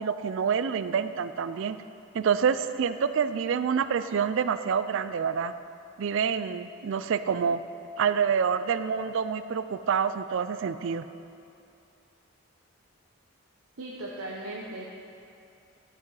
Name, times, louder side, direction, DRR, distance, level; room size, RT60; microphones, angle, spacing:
voice 1, 0.0-1.8 2.1-5.5 6.0-7.6 8.0-11.1, right 6 dB, 60° right, 12 dB, 0.3 m, -27 dB
voice 2, 13.8-15.0, right 1 dB, 80° right, -4 dB, 0.9 m, -38 dB
12.0 x 6.0 x 4.8 m, 2.7 s
head